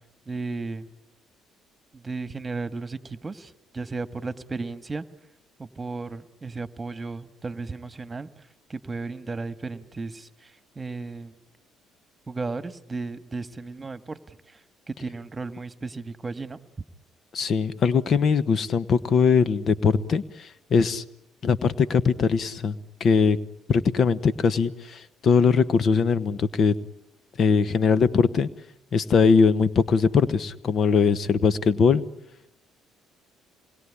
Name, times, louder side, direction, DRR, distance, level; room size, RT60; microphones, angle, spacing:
voice 1, 0.3-0.8 2.0-5.0 5.6-8.3 8.7-10.3 10.7-11.3 12.3-14.2 14.9-16.6, right 3 dB, 25° right, 12 dB, 1.6 m, -34 dB
voice 2, 17.3-21.0 21.4-23.4 23.7-26.7 27.4-28.5 28.9-32.0, left 5 dB, 55° left, 16 dB, 1.2 m, -21 dB
26.5 x 21.0 x 9.9 m, 0.84 s
hypercardioid pair, 65°, 0 cm